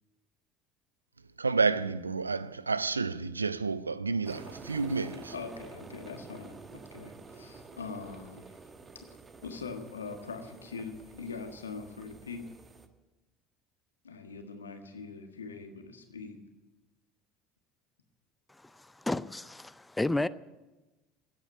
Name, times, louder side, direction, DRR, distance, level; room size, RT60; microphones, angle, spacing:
voice 1, 1.4-5.3, right 4 dB, 85° right, 0.4 m, -30 dB
sound 1, 4.2-12.9, right 4 dB, 25° right, 1.4 m, -49 dB
voice 2, 5.3-8.5 8.9-9.1 9.4-12.5 14.0-16.4, left 4 dB, 80° left, 1.5 m, -42 dB
voice 3, 18.6-20.3, left 2 dB, 10° left, 0.5 m, -32 dB
16.0 x 8.7 x 9.5 m
figure-of-eight pair, 65°, 0 cm